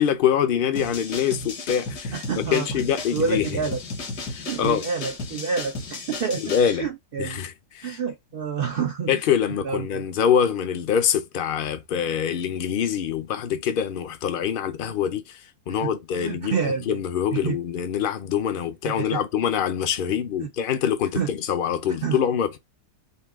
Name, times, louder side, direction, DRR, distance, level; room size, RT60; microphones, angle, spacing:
voice 1, 0.0-2.1 2.5-3.5 4.3-4.9 6.4-6.9 7.2-8.0 9.1-15.4 15.7-22.6, left 8 dB, 60° left, 0.5 m, -24 dB
sound 1, 0.8-6.7, left 3 dB, 80° left, 1.8 m, -34 dB
voice 2, 2.1-2.8 3.1-3.8 4.5-7.4 7.8-9.2 9.6-10.0 15.8-17.0 17.3-17.6 18.8-19.2 20.4-20.5 21.1-21.3 21.9-22.2, right 6 dB, 80° right, 0.5 m, -28 dB
5.4 x 2.2 x 3.6 m
omnidirectional pair, 1.7 m